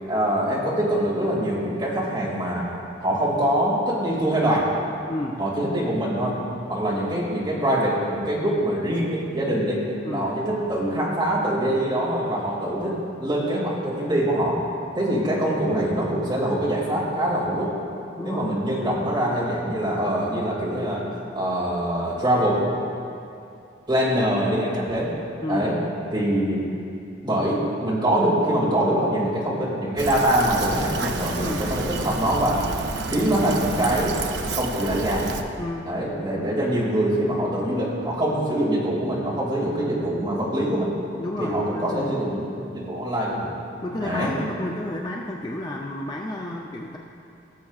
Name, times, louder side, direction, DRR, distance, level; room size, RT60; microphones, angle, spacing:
voice 1, 0.1-2.7 3.0-4.7 5.4-6.4 6.7-9.8 10.1-12.9 13.2-14.6 14.9-17.7 18.2-21.0 21.3-22.6 23.9-25.1 25.5-25.8 26.1-26.6 27.2-32.6 33.1-34.2 34.5-35.2 35.9-40.9 41.4-43.5 44.0-44.3, right 1 dB, 25° right, -7 dB, 2.2 m, -24 dB
Fill (with liquid), 30.0-35.4, right 3 dB, 60° right, 0.5 m, -30 dB
voice 2, 41.2-42.1 43.8-47.0, left 1 dB, 20° left, -1 dB, 0.4 m, -31 dB
17.0 x 7.1 x 2.4 m, 2.6 s
head